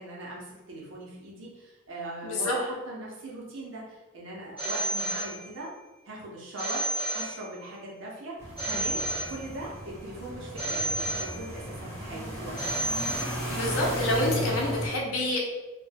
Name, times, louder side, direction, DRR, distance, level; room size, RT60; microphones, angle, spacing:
voice 1, 0.0-5.7 6.0-6.8 7.1-12.8, right 1 dB, 65° right, -4 dB, 0.6 m, -40 dB
voice 2, 2.2-2.6 13.5-15.4, left 1 dB, 85° left, -2 dB, 0.6 m, -27 dB
Telephone, 4.6-5.8 6.6-7.8 8.6-9.8 10.6-11.8 12.6-13.8, right 2 dB, 10° right, 1.1 m, -32 dB
sound 1, 8.4-14.9, equal, 30° left, 0.9 m, -35 dB
2.2 x 2.2 x 3.3 m, 1.1 s
head